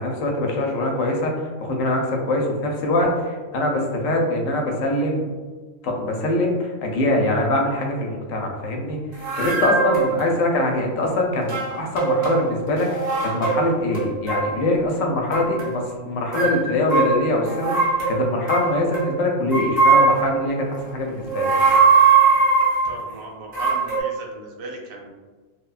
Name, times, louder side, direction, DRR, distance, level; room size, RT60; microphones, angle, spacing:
voice 1, 0.0-5.3 5.8-21.5, left 1 dB, 75° left, 1 dB, 0.9 m, -23 dB
sound 1, 9.2-10.2 11.4-12.4 12.7-13.7 13.9-14.6 15.3-15.8 16.3-19.1 19.5-20.4 21.2-23.0 23.5-24.0, right 4 dB, 40° right, 0.6 m, -20 dB
voice 2, 22.8-25.1, right 2 dB, 85° right, -1 dB, 1.1 m, -37 dB
3.2 x 2.1 x 2.3 m, 1.4 s
omnidirectional pair, 1.4 m